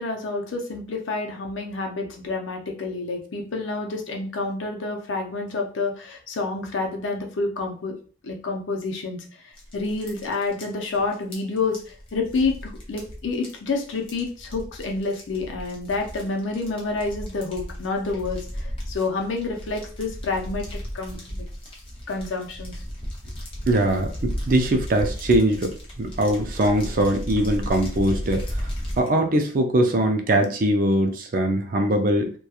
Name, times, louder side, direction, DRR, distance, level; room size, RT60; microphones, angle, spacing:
voice 1, 0.0-7.9 8.2-21.4 22.1-22.7, left 3 dB, 85° left, 2 dB, 0.6 m, -28 dB
sound 1, 9.5-29.1, equal, 30° left, 0.6 m, -35 dB
voice 2, 23.7-28.7 29.0-32.3, right 1 dB, 45° right, 5 dB, 0.4 m, -22 dB
2.8 x 2.2 x 2.3 m, 0.42 s
head